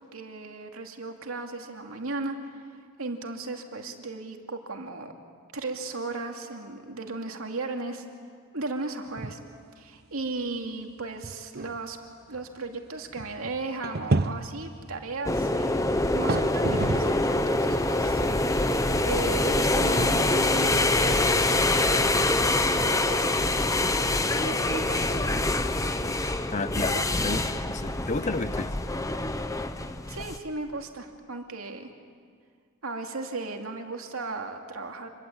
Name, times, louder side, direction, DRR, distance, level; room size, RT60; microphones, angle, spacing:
voice 1, 0.0-5.1 5.5-8.1 8.5-9.4 9.8-12.0 12.3-15.8 16.1-22.2 22.7-23.0 24.4-25.4 26.9-27.0 30.1-31.9 32.8-35.1, right 3 dB, 80° right, 3 dB, 2.6 m, -36 dB
sound 1, 9.1-9.6 9.9-10.0 10.6-10.7 11.2-17.3 17.7-22.0, right 2 dB, 50° right, 0.7 m, -33 dB
sound 2, 15.2-30.4, left 2 dB, 15° left, 0.9 m, -25 dB
voice 2, 26.5-28.7, left 3 dB, 35° left, 14 dB, 0.7 m, -32 dB
27.0 x 22.0 x 8.9 m, 2.1 s
head